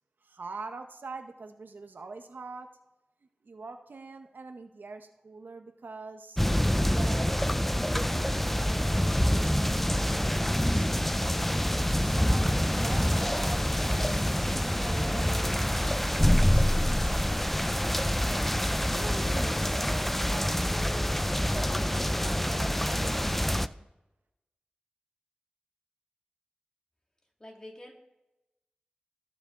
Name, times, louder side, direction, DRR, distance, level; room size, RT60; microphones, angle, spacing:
voice 1, 0.2-2.7 3.4-6.4 6.8-7.3 8.0-11.1 11.7-15.3 15.8-17.5 18.0-18.4 18.9-20.7 21.3-23.9, right 3 dB, 85° right, 7 dB, 0.8 m, -44 dB
sound 1, 6.4-23.7, equal, 5° left, 0.3 m, -26 dB
voice 2, 27.4-27.9, left 1 dB, 25° left, 1 dB, 2.0 m, -46 dB
18.5 x 6.2 x 3.7 m, 0.95 s
wide cardioid pair, 75°, 3 cm